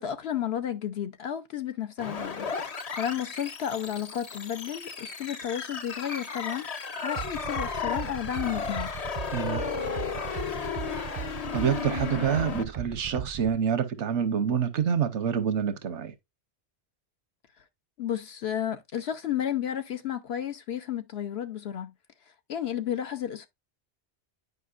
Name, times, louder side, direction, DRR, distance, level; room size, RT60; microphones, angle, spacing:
voice 1, 0.0-8.9 18.0-21.9 22.5-23.5, left 10 dB, 70° left, 0.9 m, -32 dB
sound 1, 2.0-12.6, left 5 dB, 40° left, 0.7 m, -34 dB
sound 2, 7.1-13.5, right 7 dB, 50° right, 0.4 m, -37 dB
voice 2, 9.3-9.6 11.5-16.1, right 7 dB, 90° right, 1.2 m, -27 dB
9.4 x 5.0 x 2.4 m
omnidirectional pair, 1.2 m